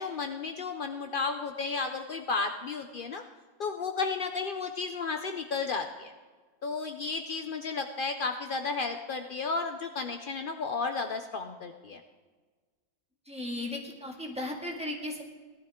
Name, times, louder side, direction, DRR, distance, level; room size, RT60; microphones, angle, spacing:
voice 1, 0.0-3.2 3.6-6.1 6.6-12.0, left 4 dB, 75° left, 6 dB, 0.4 m, -33 dB
voice 2, 13.3-15.2, left 1 dB, 5° right, -1 dB, 1.8 m, -36 dB
18.0 x 12.0 x 3.6 m, 1.4 s
omnidirectional pair, 1.7 m